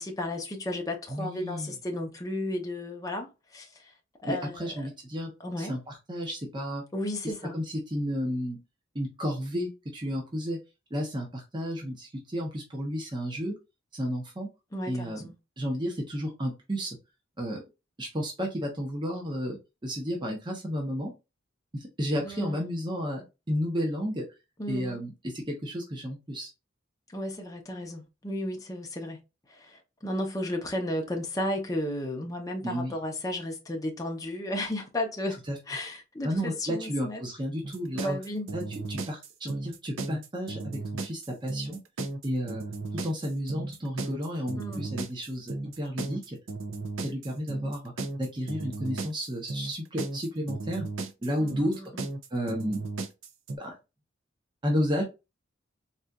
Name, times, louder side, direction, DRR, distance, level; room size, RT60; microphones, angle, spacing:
voice 1, 0.0-3.7 4.2-4.9 5.4-5.7 6.9-7.5 14.7-15.3 22.2-22.7 24.6-25.0 27.1-29.2 29.5-35.4 35.7-37.2 37.9-38.5 44.6-44.9 51.4-51.9, left 1 dB, 15° left, 0.6 m, -34 dB
voice 2, 1.1-1.7 4.3-5.3 5.6-6.8 7.5-8.6 8.9-10.6 10.9-13.5 13.9-14.5 14.9-15.3 15.6-17.0 17.4-17.6 18.0-21.1 21.7-24.2 24.7-26.5 32.6-32.9 35.5-35.6 36.2-38.2 38.5-38.6 38.9-41.8 42.2-42.6 43.0-46.4 47.0-47.9 48.2-50.9 51.2-51.7 52.3-52.8 53.6-53.7 54.6-55.0, equal, 25° right, 0.8 m, -32 dB
sound 1, 37.6-53.6, right 2 dB, 70° right, 0.5 m, -35 dB
4.0 x 2.4 x 2.3 m
head